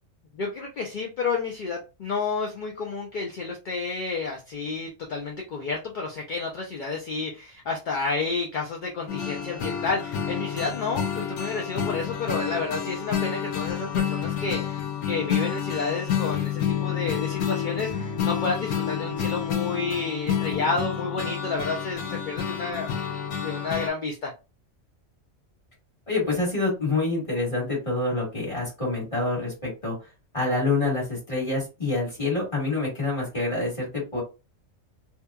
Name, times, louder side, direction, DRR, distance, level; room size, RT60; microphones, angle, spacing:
voice 1, 0.3-22.9 23.4-24.3, left 4 dB, 60° left, 0 dB, 0.5 m, -30 dB
sound 1, 9.1-23.9, left 8 dB, 90° left, 1.0 m, -29 dB
voice 2, 26.1-29.9 30.3-34.2, left 2 dB, 25° left, -5 dB, 1.5 m, -27 dB
2.8 x 2.2 x 2.2 m, 0.29 s
omnidirectional pair, 1.3 m